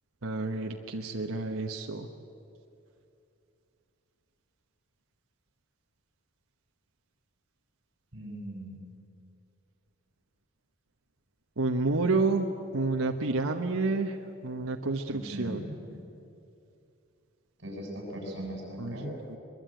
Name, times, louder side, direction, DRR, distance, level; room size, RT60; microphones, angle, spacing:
voice 1, 0.2-2.1 11.6-12.5 12.7-14.2 14.4-15.6 18.8-19.0 19.3-19.4, right 3 dB, 80° right, 2 dB, 1.3 m, -29 dB
voice 2, 8.1-8.9 15.1-16.0 17.6-19.1, equal, 50° right, 0 dB, 7.5 m, -39 dB
22.5 x 22.5 x 9.1 m, 2.6 s
head